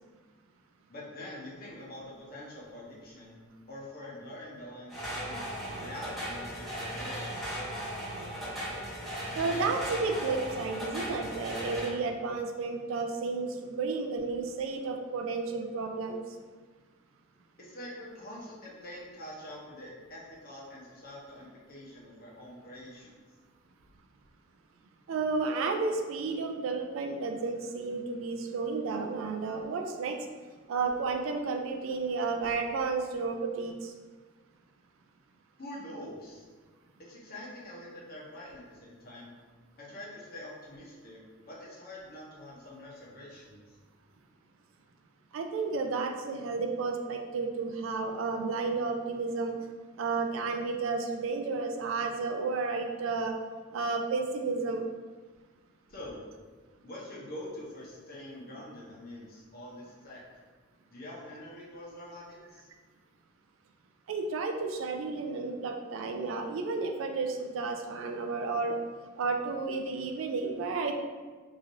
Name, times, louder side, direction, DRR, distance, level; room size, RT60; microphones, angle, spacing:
voice 1, 0.9-3.4 3.7-5.4 5.7-7.2 17.6-23.1 35.6-36.4 37.0-39.3 39.8-41.2 41.5-43.8 55.9-56.2 56.8-60.2 60.9-62.7, left 1 dB, 45° left, -5 dB, 0.8 m, -45 dB
sound 1, 4.9-11.9, equal, ahead, 0.9 m, -37 dB
voice 2, 9.3-16.2 25.1-30.2 30.7-33.9 45.3-49.5 50.0-53.3 53.7-54.8 64.1-68.8 69.2-70.9, right 4 dB, 70° right, 4 dB, 0.3 m, -32 dB
3.0 x 2.5 x 2.6 m, 1.4 s
head